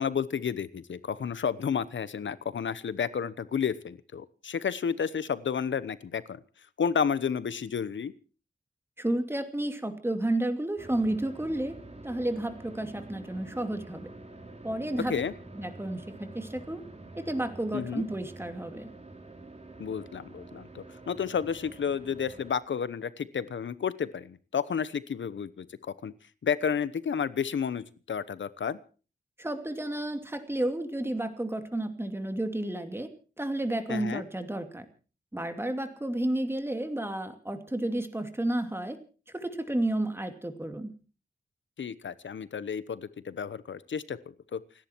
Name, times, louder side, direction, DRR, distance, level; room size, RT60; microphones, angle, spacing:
voice 1, 0.0-6.4 6.8-8.1 15.0-15.3 17.7-18.1 19.8-25.7 26.0-26.1 26.4-28.8 33.9-34.2 41.8-44.2 44.5-44.6, left 7 dB, 85° left, 16 dB, 1.0 m, -31 dB
voice 2, 9.0-11.8 12.0-14.1 14.6-15.1 15.6-16.0 16.3-16.8 17.2-18.9 29.4-33.1 33.4-34.9 35.3-39.0 39.3-40.9, right 1 dB, 10° right, 7 dB, 2.6 m, -31 dB
sound 1, 10.8-22.5, right 2 dB, 35° right, 3.4 m, -47 dB
29.5 x 10.5 x 4.6 m, 0.38 s
wide cardioid pair, 100°, 19 cm